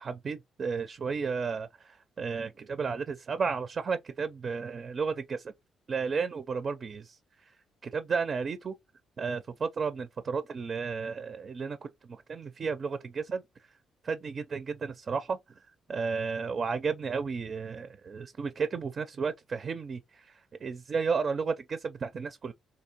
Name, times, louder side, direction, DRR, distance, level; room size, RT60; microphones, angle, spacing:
voice 1, 0.0-5.5 5.9-7.2 7.8-8.7 9.2-13.4 14.0-15.4 15.9-22.5, right 5 dB, 45° right, 0.4 m, -33 dB
3.6 x 2.8 x 2.8 m
cardioid pair, 90°, 0 cm